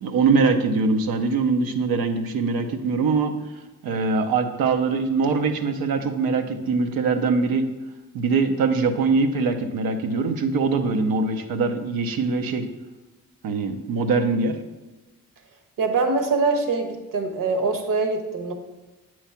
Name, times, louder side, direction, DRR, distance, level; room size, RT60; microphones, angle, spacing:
voice 1, 0.0-3.3 3.8-7.7 8.1-12.7 13.4-14.6, right 4 dB, 90° right, 6 dB, 0.7 m, -22 dB
voice 2, 15.8-18.5, right 3 dB, 65° right, 6 dB, 1.1 m, -23 dB
8.0 x 3.2 x 5.7 m, 1.2 s
supercardioid pair, 50°, 35 cm